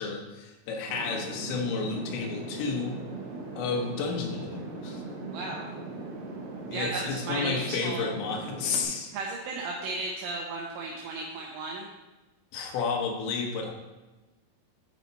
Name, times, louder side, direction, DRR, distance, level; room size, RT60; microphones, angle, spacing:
voice 1, 0.0-3.0 3.6-5.0 6.7-9.1 12.5-13.7, left 5 dB, 75° left, 2 dB, 3.1 m, -31 dB
sound 1, 0.9-8.8, right 2 dB, 50° right, 3.9 m, -39 dB
voice 2, 5.3-5.7 6.7-8.1 9.1-11.9, right 3 dB, 75° right, -2 dB, 2.9 m, -34 dB
11.0 x 4.9 x 4.0 m, 1.1 s
omnidirectional pair, 5.7 m